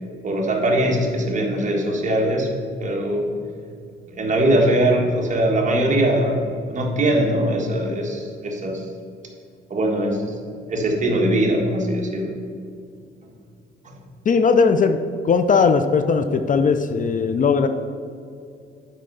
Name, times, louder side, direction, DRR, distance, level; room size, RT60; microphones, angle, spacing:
voice 1, 0.2-2.5 2.8-3.3 4.1-8.8 9.7-10.3 10.7-12.3 13.8-14.0, right 1 dB, 40° right, 0 dB, 1.6 m, -21 dB
voice 2, 14.3-15.0 15.2-17.7, left 5 dB, 40° left, 9 dB, 0.5 m, -18 dB
9.1 x 4.4 x 5.4 m, 2.4 s
cardioid pair, 90°, 20 cm